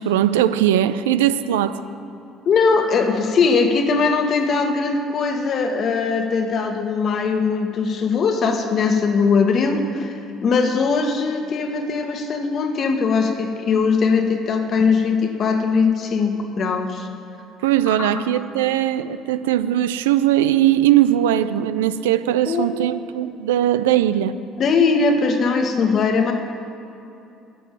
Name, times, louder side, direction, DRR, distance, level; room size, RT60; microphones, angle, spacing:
voice 1, 0.0-1.8 17.6-24.4, right 12 dB, 75° right, 13 dB, 0.4 m, -19 dB
voice 2, 2.4-10.1 10.4-17.1 17.9-18.2 22.5-22.7 24.6-26.3, left 4 dB, 45° left, 5 dB, 1.5 m, -20 dB
10.0 x 7.8 x 8.8 m, 2.7 s
figure-of-eight pair, 55°, 0 cm